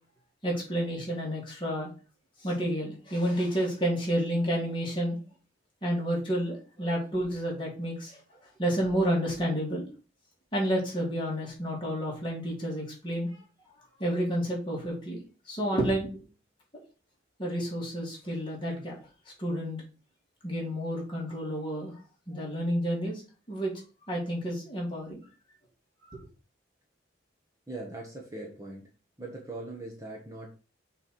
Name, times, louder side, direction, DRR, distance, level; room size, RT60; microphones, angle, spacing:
voice 1, 0.4-1.9 2.4-5.2 5.8-8.2 8.6-9.9 10.5-13.4 14.0-15.2 15.5-16.1 17.4-19.0 19.4-19.8 20.4-21.9 22.3-23.2 23.5-23.7 24.1-25.2 26.1-26.2, equal, 25° left, -3 dB, 2.9 m, -30 dB
voice 2, 27.7-28.9 29.2-30.5, right 2 dB, 15° right, -1 dB, 1.3 m, -40 dB
6.5 x 3.5 x 6.1 m, 0.35 s
head